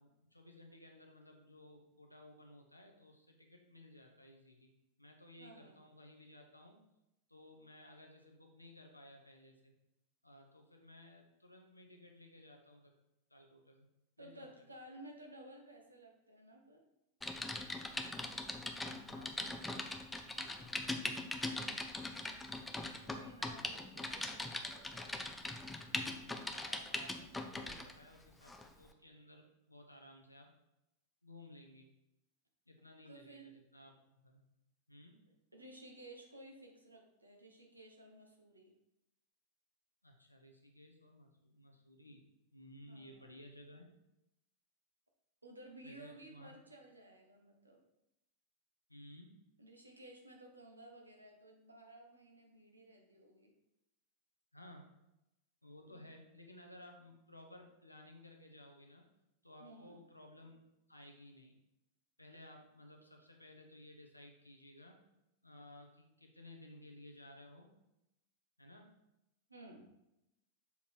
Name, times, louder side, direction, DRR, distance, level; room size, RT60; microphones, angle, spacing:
voice 1, 0.0-4.7 5.0-6.8 7.3-9.7 10.2-12.9 13.3-13.9 14.2-14.5 18.8-19.9 20.2-21.2 25.9-30.5 31.2-31.9 32.7-34.4 34.9-35.2 40.0-42.2 42.5-43.9 45.8-46.5 48.9-49.4 54.5-54.9 55.6-59.1 59.4-60.6 60.9-61.5 62.2-65.0 65.4-67.7 68.6-68.9, left 1 dB, 85° left, 2 dB, 1.0 m, -57 dB
voice 2, 5.4-5.8 14.2-16.8 22.1-25.2 33.0-33.5 35.2-38.7 42.9-43.3 45.4-47.8 49.6-53.5 55.9-56.1 59.6-60.0 69.5-69.9, right 1 dB, 80° right, 2 dB, 1.1 m, -56 dB
Typing, 17.2-27.9 28.5-28.7, left 2 dB, 5° left, 0.6 m, -41 dB
7.1 x 4.1 x 4.6 m, 0.90 s
figure-of-eight pair, 90°, 0 cm